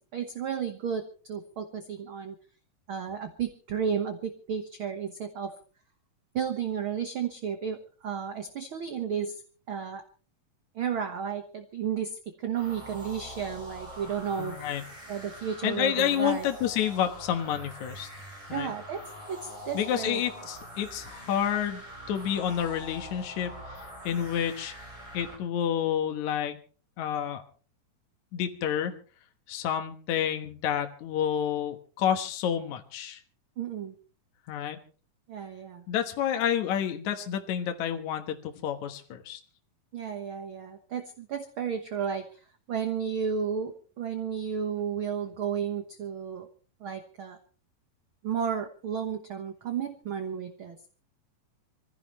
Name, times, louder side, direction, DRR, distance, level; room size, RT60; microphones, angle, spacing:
voice 1, 0.1-2.4 2.9-5.5 6.3-9.4 9.7-10.0 10.7-14.7 15.1-16.5 18.5-20.2 33.6-33.9 35.3-35.8 39.9-42.4 42.7-46.5 46.8-47.4 48.2-50.9, right 7 dB, 55° right, 7 dB, 1.5 m, -33 dB
sound 1, 12.5-25.4, equal, 10° right, 7.3 m, -44 dB
voice 2, 14.4-14.8 15.6-18.1 18.5-18.7 19.7-21.8 22.1-24.7 25.1-26.6 27.0-27.4 28.3-28.9 29.5-33.2 34.5-34.8 35.9-39.4, left 9 dB, 65° left, 5 dB, 2.5 m, -29 dB
26.0 x 15.5 x 3.1 m, 0.39 s
omnidirectional pair, 3.8 m